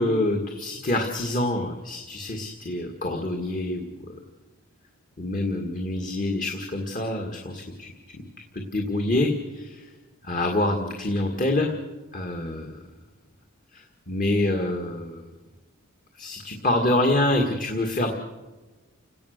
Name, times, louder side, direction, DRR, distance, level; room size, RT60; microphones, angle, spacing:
voice 1, 0.0-3.8 5.2-7.9 8.5-9.3 9.5-9.7 10.2-11.7 12.1-12.7 14.1-15.2 16.2-18.1, left 1 dB, 35° left, 3 dB, 2.0 m, -26 dB
29.5 x 18.0 x 6.7 m, 1.2 s
head